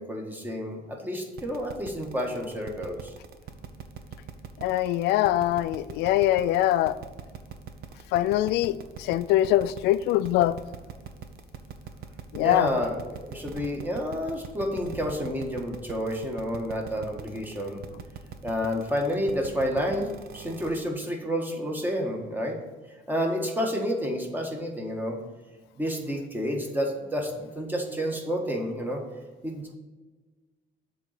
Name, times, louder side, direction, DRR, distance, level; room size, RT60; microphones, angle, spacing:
voice 1, 0.0-3.1 8.7-8.8 12.4-17.8 18.4-22.6 23.1-25.2 25.8-29.0 29.4-29.8, equal, 10° right, 1 dB, 1.5 m, -30 dB
sound 1, 1.4-20.8, right 8 dB, 65° right, 0.8 m, -42 dB
voice 2, 4.6-7.0 8.1-10.6 12.3-12.7, left 14 dB, 85° left, 15 dB, 0.4 m, -23 dB
7.4 x 4.0 x 6.5 m, 1.3 s
cardioid pair, 110°, 17 cm